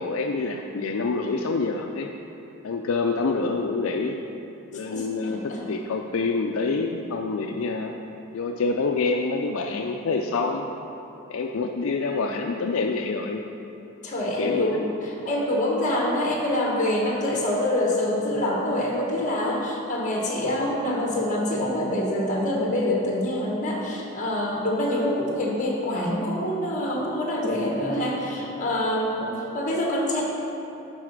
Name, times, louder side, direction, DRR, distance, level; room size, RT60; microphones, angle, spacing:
voice 1, 0.0-2.1 2.6-4.2 4.7-7.9 8.3-10.7 11.3-13.4 14.4-14.8, left 3 dB, 75° left, 3 dB, 0.4 m, -26 dB
voice 2, 4.8-5.6 14.0-30.2, left 1 dB, 35° left, -2 dB, 1.5 m, -26 dB
9.8 x 4.0 x 6.0 m, 2.8 s
head